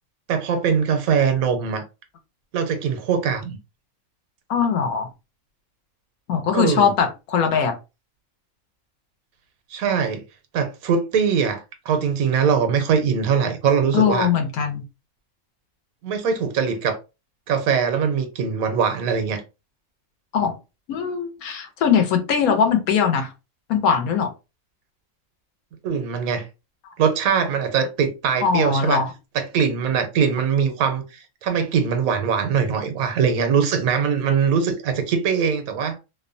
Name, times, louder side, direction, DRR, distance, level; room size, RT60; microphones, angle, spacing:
voice 1, 0.3-1.8 2.5-3.6 6.5-6.9 9.7-10.2 10.5-14.3 16.0-17.0 17.5-19.4 25.8-26.5 27.0-29.0 29.3-36.0, right 6 dB, 85° right, 1.1 m, -22 dB
voice 2, 4.5-5.1 6.3-7.7 13.9-14.8 20.3-20.5 20.9-23.3 23.7-24.3 28.4-29.1, left 7 dB, 85° left, 1.2 m, -21 dB
2.8 x 2.1 x 2.5 m
omnidirectional pair, 1.5 m